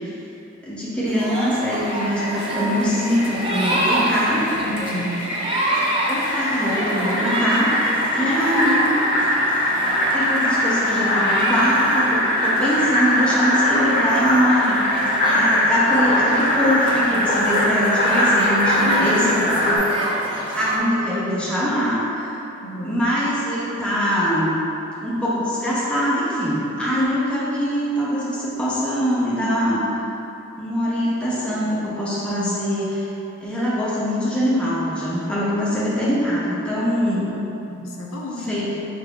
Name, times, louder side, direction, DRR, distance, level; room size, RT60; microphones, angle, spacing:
voice 1, 0.6-4.5 6.1-7.8 8.1-9.0 9.8-19.8 20.5-22.3 22.8-24.6 25.0-29.9 30.6-33.1 33.4-37.3 38.5-38.8, equal, 5° left, -8 dB, 0.7 m, -23 dB
sound 1, 1.1-20.8, right 1 dB, 25° right, 0.4 m, -28 dB
Fill (with liquid), 1.8-19.8, left 1 dB, 40° left, 0.7 m, -22 dB
voice 2, 4.7-5.2 18.8-19.4 22.6-23.0 37.6-38.6, left 2 dB, 80° left, -2 dB, 0.5 m, -29 dB
4.8 x 3.7 x 2.2 m, 2.9 s
head